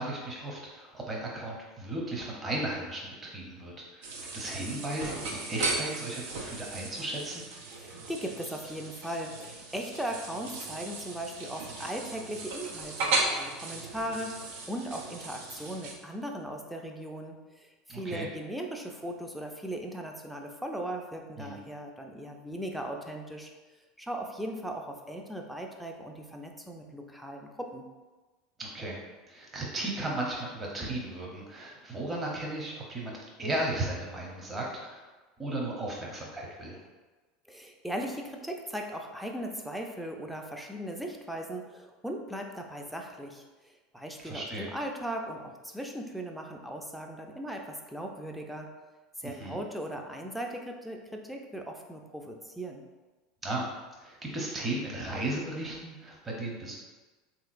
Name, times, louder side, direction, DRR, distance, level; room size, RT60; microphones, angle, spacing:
voice 1, 0.0-7.4 17.9-18.3 21.4-21.5 28.6-29.0 29.3-35.0 35.4-36.8 44.2-44.7 49.2-49.6 53.4-53.7 54.0-56.7, right 1 dB, 25° right, -2 dB, 0.9 m, -35 dB
sound 1, 4.0-15.9, right 2 dB, 70° right, 0.6 m, -36 dB
voice 2, 7.7-23.5 24.0-27.9 37.5-48.7 49.2-52.8, right 1 dB, ahead, 2 dB, 0.5 m, -38 dB
3.5 x 2.9 x 2.5 m, 1.2 s
hypercardioid pair, 85°, 0 cm